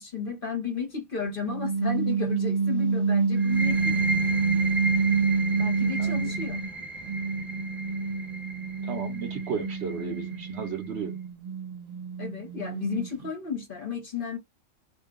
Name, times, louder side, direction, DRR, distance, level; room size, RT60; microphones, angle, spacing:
voice 1, 0.0-4.0 5.6-6.6 12.2-14.4, left 5 dB, 45° left, 0.9 m, -33 dB
sound 1, 1.4-6.7 7.1-13.3, right 5 dB, 75° right, 0.3 m, -28 dB
sound 2, 3.4-10.8, right 2 dB, ahead, 0.8 m, -34 dB
voice 2, 6.0-6.4 8.9-11.2, right 5 dB, 60° right, 0.9 m, -34 dB
2.5 x 2.2 x 3.6 m
omnidirectional pair, 1.4 m